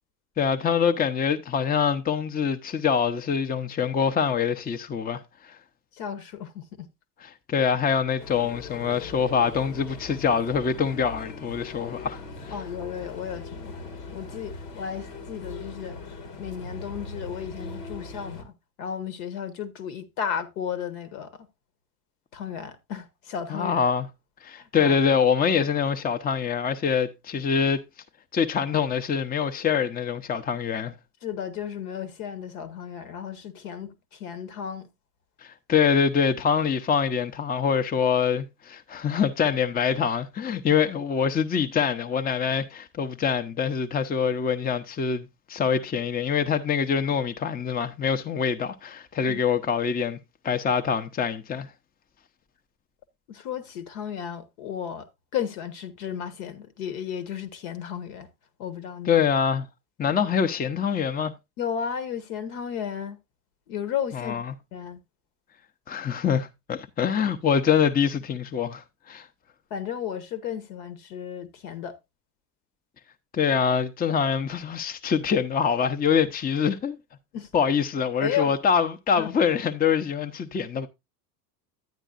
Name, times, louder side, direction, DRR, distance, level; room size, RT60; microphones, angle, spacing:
voice 1, 0.4-5.6 7.2-12.2 12.4-12.5 23.5-24.1 24.4-27.8 28.3-30.9 35.4-50.2 50.4-51.7 59.1-59.7 60.0-61.3 64.1-64.4 65.9-69.3 73.3-77.0 77.5-80.9, left 7 dB, 20° left, 0.7 m, -25 dB
voice 2, 5.9-6.9 12.5-13.7 14.1-16.0 16.4-18.5 18.8-21.5 22.3-23.9 24.6-25.0 31.2-34.9 49.3-49.4 53.3-55.1 55.3-58.3 58.6-59.2 60.1-60.2 61.6-63.2 63.7-64.4 64.7-65.0 69.7-72.0 77.3-77.5 78.2-78.5 79.2-79.3, left 8 dB, 65° left, 1.3 m, -34 dB
sound 1, 8.2-18.4, left 3 dB, 80° left, 1.7 m, -40 dB
10.5 x 8.9 x 2.5 m
hypercardioid pair, 80°, 48 cm